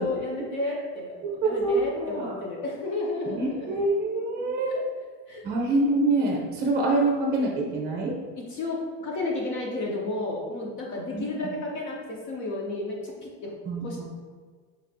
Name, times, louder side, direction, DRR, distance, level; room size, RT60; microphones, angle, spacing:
voice 1, 0.0-3.8 4.7-4.8 5.3-5.4 8.5-13.5 13.8-14.0, left 2 dB, 35° left, -2 dB, 0.4 m, -32 dB
voice 2, 1.2-2.4 3.3-4.7 5.4-8.2 11.1-11.3 13.6-14.0, right 2 dB, 30° right, -2 dB, 0.7 m, -26 dB
4.2 x 2.5 x 2.6 m, 1.6 s
supercardioid pair, 160°, 37 cm